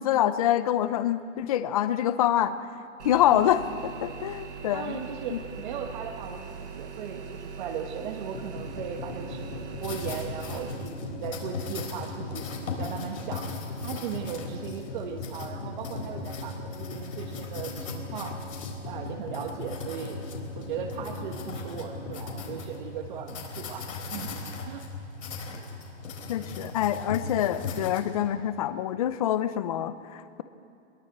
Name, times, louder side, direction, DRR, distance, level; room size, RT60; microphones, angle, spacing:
voice 1, 0.0-2.6 3.0-5.0 5.3-5.4 26.3-30.4, left 11 dB, 30° left, 13 dB, 0.6 m, -26 dB
sound 1, 3.0-10.7, right 6 dB, 70° right, 7.6 m, -41 dB
voice 2, 4.7-13.5 13.8-18.4 18.8-20.2 20.5-24.3 24.6-24.9 26.4-26.7, right 7 dB, 40° right, 3 dB, 1.5 m, -38 dB
sound 2, 8.3-22.6, left 3 dB, 60° left, 5.4 m, -40 dB
sound 3, 9.8-28.0, left 3 dB, 90° left, 4.3 m, -38 dB
22.0 x 22.0 x 8.1 m, 2.9 s
hypercardioid pair, 165°, 37 cm